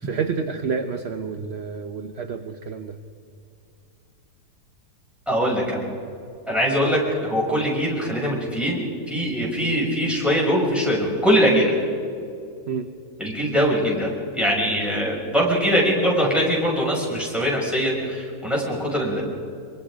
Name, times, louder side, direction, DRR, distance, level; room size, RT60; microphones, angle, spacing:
voice 1, 0.0-3.0 6.8-6.9 12.7-12.9, right 5 dB, 50° right, 8 dB, 0.9 m, -29 dB
voice 2, 5.3-5.9 6.5-8.8 9.1-11.7 13.2-14.1 14.3-19.2, equal, ahead, -4 dB, 6.1 m, -22 dB
25.0 x 23.5 x 5.1 m, 2.5 s
omnidirectional pair, 1.9 m